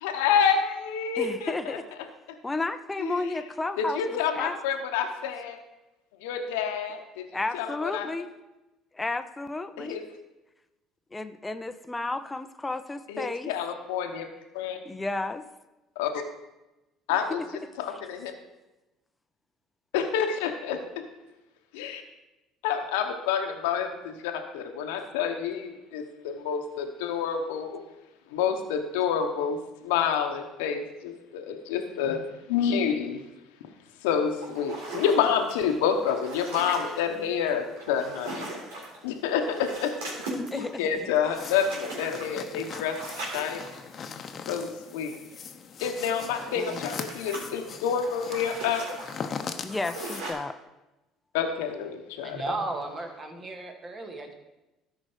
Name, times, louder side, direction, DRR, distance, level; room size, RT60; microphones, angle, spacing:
voice 1, 0.0-1.5 3.0-3.1 3.8-5.6 6.2-7.2 7.5-8.1 9.8-10.0 13.1-14.3 14.5-14.8 16.0-16.2 17.1-17.4 17.8-18.3 19.9-20.8 21.7-22.0 22.6-27.8 28.3-32.2 32.5-33.2 34.0-38.5 39.0-39.9 40.5-43.0 43.3-43.6 44.5-45.1 45.8-48.9 51.3-52.4, left 7 dB, 85° left, 5 dB, 1.0 m, -28 dB
voice 2, 1.2-1.9 2.4-4.6 7.3-8.3 8.9-10.0 11.1-13.5 14.8-15.4 17.3-17.4 40.3-41.1 46.6-46.8 49.6-50.6, left 2 dB, 15° left, 10 dB, 0.7 m, -32 dB
sound 1, 34.4-37.2 37.7-39.0 39.3-44.4 46.0-50.3, right 2 dB, 85° right, 3.5 m, -39 dB
sound 2, 41.3-50.2, left 6 dB, 45° left, 0.9 m, -40 dB
voice 3, 52.2-54.3, right 2 dB, 35° right, 3 dB, 2.1 m, -34 dB
13.0 x 5.1 x 5.0 m, 1.0 s
supercardioid pair, 75°, 0 cm